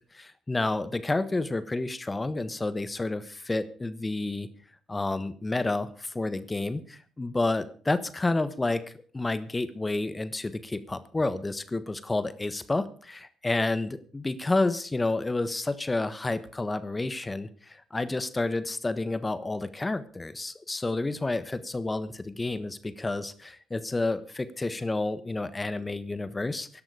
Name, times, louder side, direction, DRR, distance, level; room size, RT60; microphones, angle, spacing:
voice 1, 0.1-4.5 4.9-8.8 9.1-26.8, left 2 dB, 25° left, 13 dB, 1.3 m, -30 dB
17.0 x 11.5 x 5.0 m, 0.44 s
hypercardioid pair, 45°, 0 cm